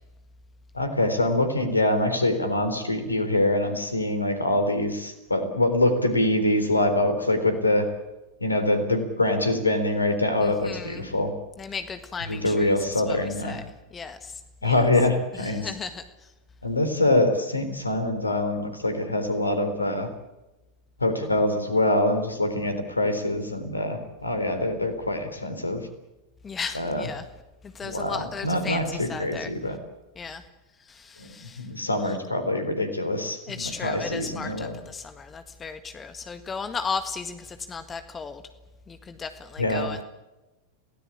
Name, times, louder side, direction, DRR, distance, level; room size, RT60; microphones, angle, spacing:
voice 1, 0.7-7.9 8.4-11.3 12.3-13.6 14.6-15.7 16.6-20.1 21.0-25.8 26.8-27.0 27.9-29.8 31.2-34.8 39.6-40.0, left 1 dB, 80° left, 9 dB, 3.7 m, -24 dB
voice 2, 10.4-11.1 11.6-13.6 13.9-14.8 15.3-16.3 26.4-27.3 27.6-29.5 30.2-30.4 30.8-31.7 32.0-32.2 33.5-38.4 38.9-40.0, left 5 dB, 20° left, 9 dB, 1.7 m, -36 dB
28.0 x 18.0 x 8.7 m, 1.0 s
figure-of-eight pair, 90°, 0 cm